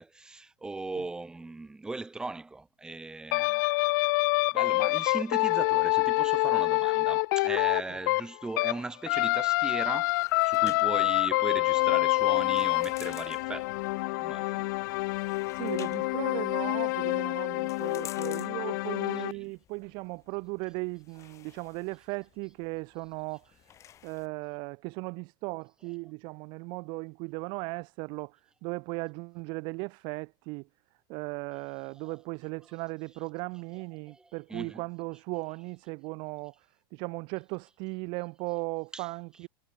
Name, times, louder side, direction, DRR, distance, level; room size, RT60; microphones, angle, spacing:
voice 1, 0.0-3.6 4.5-13.7 14.2-14.7 19.3-19.5 34.1-34.8 38.9-39.1, right 3 dB, 5° right, 1.0 m, -38 dB
sound 1, 3.3-8.8 9.1-19.3, left 24 dB, 55° left, 0.4 m, -27 dB
sound 2, 9.3-24.3, left 11 dB, 25° left, 1.4 m, -53 dB
Crowd, 11.2-16.4, left 15 dB, 75° left, 1.8 m, -52 dB
voice 2, 15.5-23.6 24.0-30.7 31.1-39.5, right 30 dB, 40° right, 0.4 m, -37 dB
supercardioid pair, 160°, 12 cm